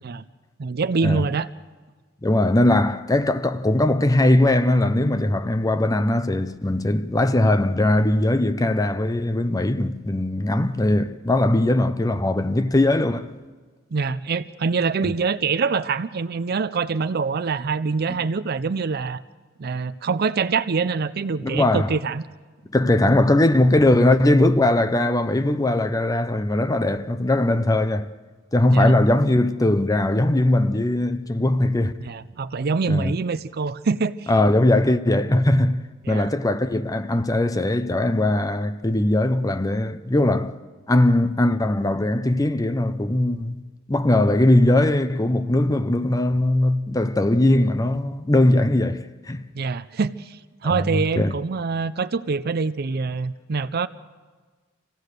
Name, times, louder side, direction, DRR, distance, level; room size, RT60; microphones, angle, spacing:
voice 1, 0.6-1.5 13.9-19.2 19.6-22.2 28.7-28.9 32.0-34.3 36.0-36.3 49.5-53.9, right 4 dB, 50° right, 0.5 m, -25 dB
voice 2, 2.2-13.3 15.0-15.2 21.4-22.0 22.7-28.1 28.5-31.9 32.9-33.1 34.3-40.5 40.9-43.6 43.9-49.4 50.6-51.3, left 1 dB, 20° left, 0.6 m, -20 dB
26.0 x 16.5 x 6.6 m
head